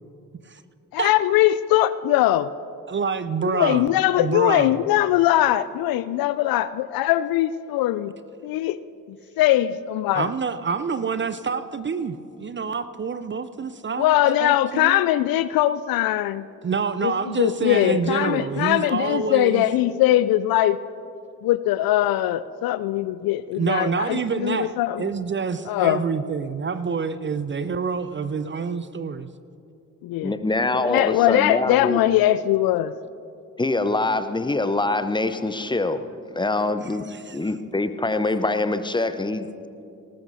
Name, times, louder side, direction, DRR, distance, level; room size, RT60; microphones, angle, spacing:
voice 1, 0.9-2.5 3.5-8.1 8.4-8.8 9.1-10.3 14.0-16.5 17.0-20.8 21.4-25.1 25.7-26.0 30.0-30.3 30.7-32.9, left 14 dB, 55° left, 16 dB, 0.5 m, -21 dB
voice 2, 2.9-3.8 4.2-4.7 10.1-14.1 14.4-15.0 16.6-19.6 23.5-29.3 37.1-37.5, right 5 dB, 25° right, 13 dB, 0.6 m, -27 dB
voice 3, 30.2-32.0 33.6-36.0 36.3-37.1 37.3-39.5, left 2 dB, 10° left, 11 dB, 0.8 m, -24 dB
19.0 x 18.5 x 2.7 m, 2.6 s
figure-of-eight pair, 40°, 44 cm